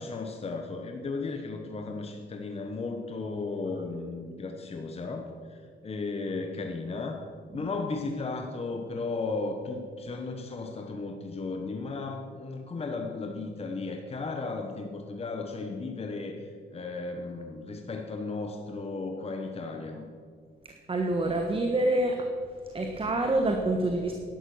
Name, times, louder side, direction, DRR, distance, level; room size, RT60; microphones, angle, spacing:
voice 1, 0.0-5.2 5.5-7.3 7.5-20.1, left 3 dB, 30° left, 3 dB, 1.1 m, -35 dB
voice 2, 20.6-22.3 22.7-24.1, right 2 dB, 30° right, 3 dB, 1.3 m, -27 dB
11.5 x 9.9 x 6.3 m, 2.2 s
cardioid pair, 90°, 20 cm